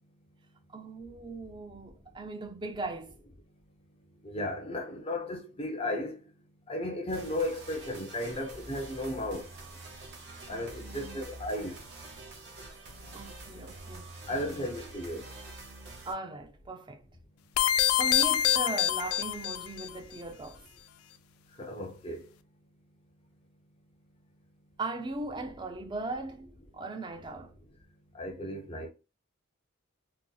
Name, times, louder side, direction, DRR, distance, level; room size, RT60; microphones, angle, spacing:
voice 1, 0.7-3.2 10.5-11.3 13.1-14.7 16.0-17.0 18.0-20.6 24.8-27.5, right 2 dB, 20° right, 0.4 m, -39 dB
voice 2, 4.2-6.2 6.7-9.4 10.5-11.8 14.3-15.2 21.6-22.2 28.1-28.9, left 1 dB, 25° left, 0.5 m, -34 dB
sound 1, 7.1-16.1, right 2 dB, 55° right, 0.9 m, -46 dB
sound 2, 17.6-19.9, left 11 dB, 90° left, 0.3 m, -26 dB
4.0 x 2.1 x 2.2 m
head